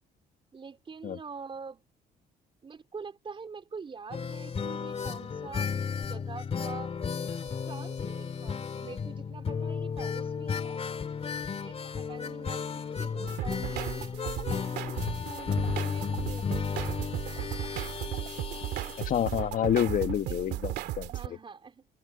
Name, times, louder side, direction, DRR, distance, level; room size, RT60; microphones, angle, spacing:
voice 1, 0.5-1.8 2.6-5.7 6.0-6.9 7.6-10.8 11.5-17.3 20.2-20.8 21.1-21.9, right 5 dB, 30° right, 4.0 m, -45 dB
sound 1, 4.1-19.8 20.0-20.1 20.4-20.5, left 6 dB, 35° left, 2.7 m, -34 dB
sound 2, 13.3-21.3, right 15 dB, 80° right, 2.5 m, -36 dB
voice 2, 19.0-21.1, left 10 dB, 55° left, 1.3 m, -28 dB
cardioid pair, 110°, 17 cm